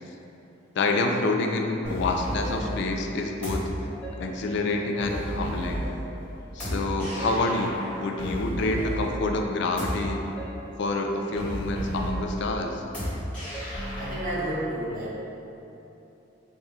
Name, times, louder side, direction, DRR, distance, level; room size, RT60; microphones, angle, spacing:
voice 1, 0.8-3.6 4.2-5.9 6.5-10.2 10.8-12.8, left 2 dB, 65° left, 3 dB, 0.3 m, -27 dB
sound 1, 1.8-14.5, equal, 5° left, 1.2 m, -34 dB
voice 2, 14.0-15.1, right 1 dB, 45° right, -6 dB, 0.8 m, -31 dB
4.1 x 2.3 x 3.5 m, 2.9 s
head